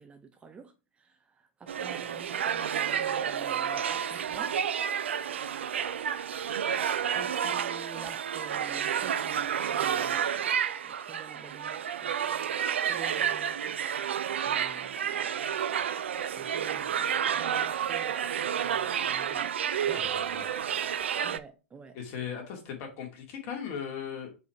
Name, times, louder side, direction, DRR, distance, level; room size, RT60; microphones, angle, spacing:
voice 1, 0.0-4.6 7.1-10.4 10.8-12.2 12.8-14.1 14.4-15.4 16.3-17.1 17.3-20.1 21.2-22.0, right 5 dB, 15° right, 0.5 m, -48 dB
sound 1, 1.7-21.4, right 8 dB, 65° right, 0.5 m, -30 dB
voice 2, 19.9-20.7 21.9-24.3, left 7 dB, 40° left, 2.1 m, -38 dB
4.7 x 4.6 x 4.4 m
figure-of-eight pair, 100°, 7 cm